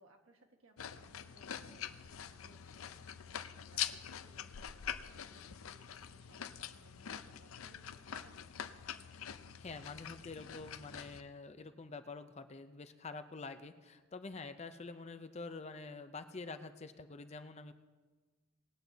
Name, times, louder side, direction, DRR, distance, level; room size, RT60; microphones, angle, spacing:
voice 1, 0.0-8.4, right 2 dB, 65° right, 3 dB, 1.5 m, -66 dB
Eating Carrot, 0.8-11.2, left 9 dB, 75° left, 0.5 m, -45 dB
voice 2, 9.6-17.7, left 3 dB, 30° left, 9 dB, 0.5 m, -47 dB
19.5 x 8.9 x 4.0 m, 1.3 s
head